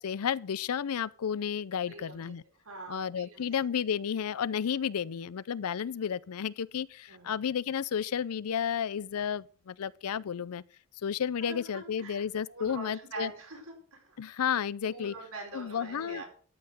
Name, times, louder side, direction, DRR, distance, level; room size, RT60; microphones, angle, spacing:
voice 1, 0.0-2.4 2.9-10.6 11.0-13.3 14.2-15.1 15.5-16.2, left 8 dB, 85° left, 0.5 m, -32 dB
voice 2, 1.9-2.3 2.6-3.5 7.1-7.3 11.4-14.2 14.9-16.2, right 3 dB, 80° right, 4.8 m, -44 dB
12.5 x 5.8 x 6.5 m
head